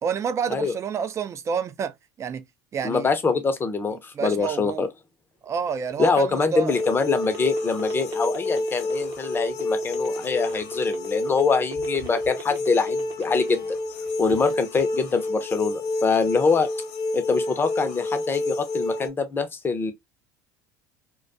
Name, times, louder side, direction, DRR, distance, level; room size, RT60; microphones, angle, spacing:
voice 1, 0.0-1.9 2.2-2.4 2.7-3.1 4.2-4.9 5.4-6.8, right 6 dB, 30° right, 0.4 m, -28 dB
voice 2, 2.8-4.9 6.0-13.6 14.2-16.7 17.1-19.9, left 4 dB, 20° left, 0.6 m, -24 dB
sound 1, 5.5-13.7 14.1-14.8, right 6 dB, 45° right, 0.7 m, -38 dB
sound 2, 6.6-19.1, left 2 dB, 60° left, 0.9 m, -29 dB
2.2 x 2.2 x 2.5 m
hypercardioid pair, 75°, 10 cm